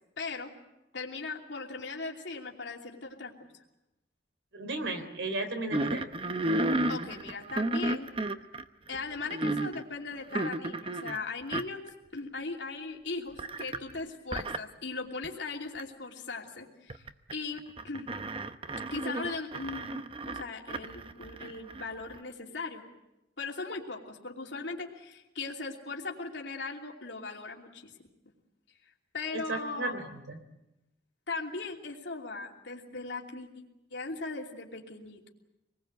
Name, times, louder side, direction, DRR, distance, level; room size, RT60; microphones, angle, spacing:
voice 1, 0.2-0.5 0.9-3.3 6.9-8.1 8.9-17.0 17.3-18.1 18.9-22.8 23.4-27.9 29.1-30.0 31.3-33.5 33.9-35.2, left 3 dB, 80° left, -1 dB, 2.9 m, -38 dB
voice 2, 4.5-6.1 29.5-30.4, right 2 dB, 85° right, 8 dB, 3.3 m, -34 dB
sound 1, 5.7-9.8 10.3-11.2 11.5-11.9 12.2-12.3 13.4-13.9 14.3-14.6 15.2-15.3 15.8-15.9 16.9-17.3 17.6-22.1, right 1 dB, 30° right, 0.8 m, -32 dB
26.5 x 20.5 x 8.0 m, 0.95 s
head